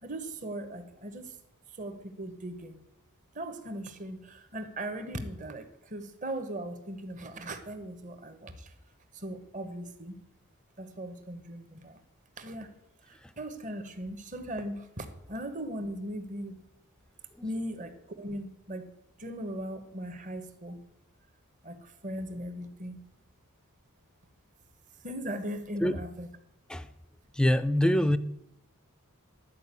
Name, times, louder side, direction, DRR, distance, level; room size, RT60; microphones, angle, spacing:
voice 1, 0.0-1.3 1.8-2.8 3.3-8.7 9.1-10.2 10.8-12.0 12.4-12.7 13.1-16.6 17.4-18.9 19.2-20.8 21.6-23.0 25.0-26.3, right 1 dB, 35° right, 1.1 m, -38 dB
voice 2, 27.3-28.2, left 1 dB, 5° left, 0.4 m, -24 dB
12.0 x 5.0 x 8.2 m
head